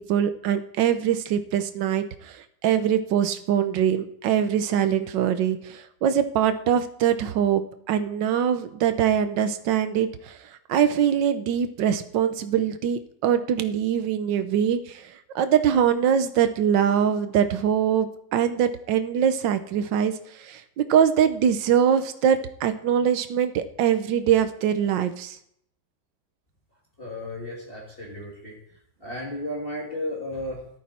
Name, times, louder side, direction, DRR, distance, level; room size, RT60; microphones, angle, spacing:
voice 1, 0.0-7.6 7.9-10.4 10.7-25.4, right 9 dB, 70° right, 10 dB, 1.5 m, -23 dB
voice 2, 27.0-28.6 29.0-30.6, left 1 dB, 30° left, -3 dB, 2.8 m, -33 dB
14.0 x 11.5 x 4.3 m, 0.72 s
omnidirectional pair, 2.1 m